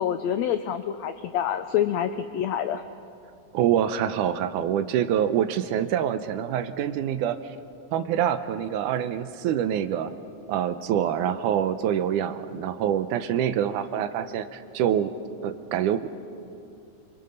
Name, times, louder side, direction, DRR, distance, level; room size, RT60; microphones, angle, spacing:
voice 1, 0.0-2.8, left 9 dB, 85° left, 10 dB, 1.5 m, -27 dB
voice 2, 3.5-7.4 7.9-10.1 10.5-15.1 15.4-16.1, right 10 dB, 75° right, 11 dB, 2.1 m, -25 dB
27.5 x 25.0 x 5.3 m, 2.6 s
omnidirectional pair, 3.8 m